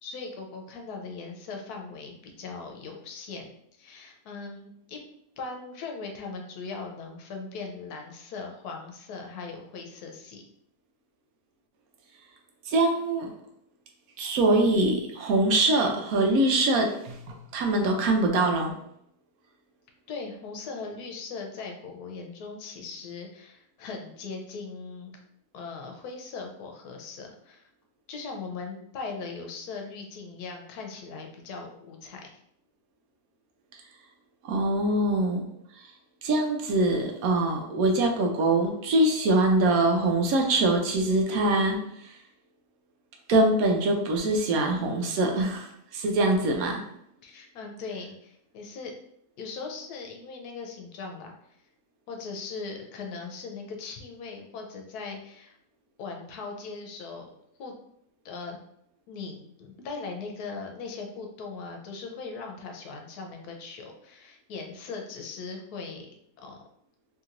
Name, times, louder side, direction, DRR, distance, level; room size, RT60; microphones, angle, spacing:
voice 1, 0.0-3.5 3.8-5.0 5.4-10.4 20.1-25.2 25.5-27.7 28.1-32.3 47.2-48.9 49.4-51.6 52.1-55.6 56.0-57.3 57.6-57.7 58.2-58.6 59.1-66.1 66.4-66.6, left 4 dB, 80° left, 2 dB, 1.1 m, -39 dB
voice 2, 12.6-13.3 14.2-18.7 33.7-33.8 34.4-35.5 35.7-35.9 36.2-42.2 43.3-46.9, right 2 dB, 75° right, 2 dB, 1.0 m, -24 dB
2.9 x 2.8 x 2.5 m, 0.74 s
omnidirectional pair, 1.6 m